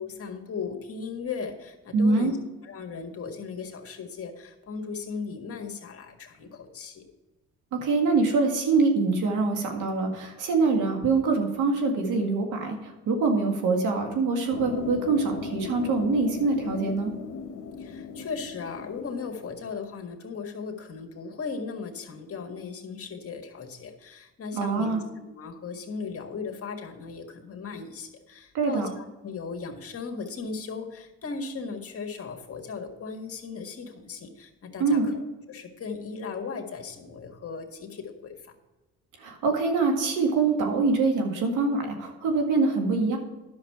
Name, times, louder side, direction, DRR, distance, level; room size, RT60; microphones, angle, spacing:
voice 1, 0.0-2.4 2.6-7.0 17.8-38.3, left 5 dB, 50° left, 3 dB, 1.7 m, -37 dB
voice 2, 1.9-2.3 7.7-17.1 24.5-25.0 28.5-28.9 34.8-35.1 39.2-43.2, right 3 dB, 85° right, 3 dB, 1.9 m, -24 dB
sound 1, 14.5-19.5, left 6 dB, 85° left, 0.9 m, -38 dB
10.5 x 6.4 x 4.7 m, 1.1 s
cardioid pair, 90°, 30 cm